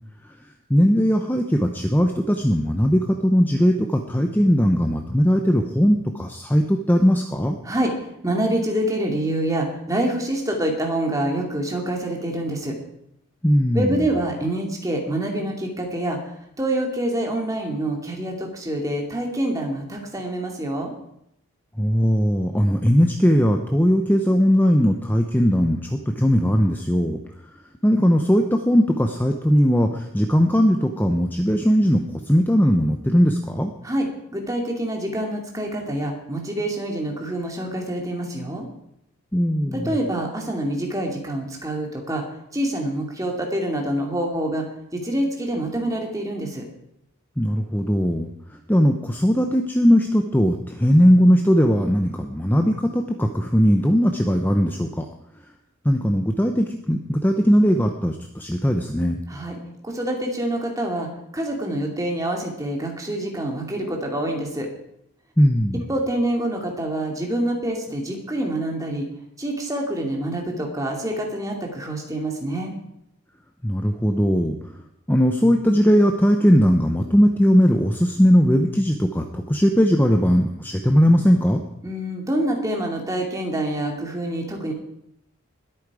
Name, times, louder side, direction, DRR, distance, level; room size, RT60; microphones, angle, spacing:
voice 1, 0.7-7.6 13.4-13.9 21.8-25.8 26.1-27.2 27.8-33.7 39.3-39.9 47.4-48.3 48.7-55.1 55.8-59.2 65.4-65.8 73.6-74.5 75.1-81.6, equal, 10° left, 4 dB, 0.7 m, -19 dB
voice 2, 8.2-12.8 13.7-16.2 16.6-20.9 33.8-38.7 39.7-42.2 42.5-44.6 44.9-46.6 59.3-59.6 59.8-61.1 61.3-64.7 65.9-69.1 69.4-72.7 81.8-84.7, right 1 dB, 15° right, 1 dB, 2.4 m, -26 dB
20.5 x 8.8 x 4.9 m, 0.78 s
head